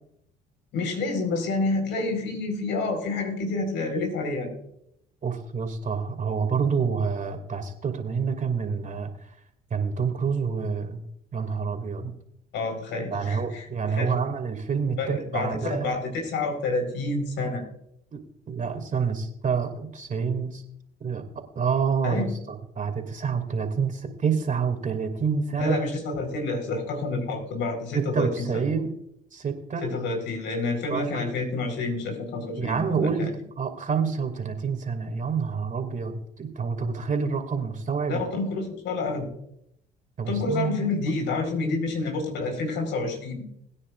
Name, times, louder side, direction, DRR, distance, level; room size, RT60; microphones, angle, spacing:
voice 1, 0.7-4.5 12.5-14.1 15.0-17.6 22.0-22.3 25.6-28.6 29.8-33.3 38.1-39.3 40.2-43.4, left 3 dB, 65° left, 3 dB, 4.6 m, -28 dB
voice 2, 5.2-9.1 9.7-11.0 11.3-12.1 13.1-16.0 18.1-18.2 18.5-20.6 21.0-25.8 27.9-28.9 29.3-29.9 30.9-31.3 32.6-38.2 40.2-40.9, right 6 dB, 40° right, 6 dB, 2.6 m, -28 dB
21.0 x 9.6 x 2.5 m, 0.75 s
hypercardioid pair, 65°, 20 cm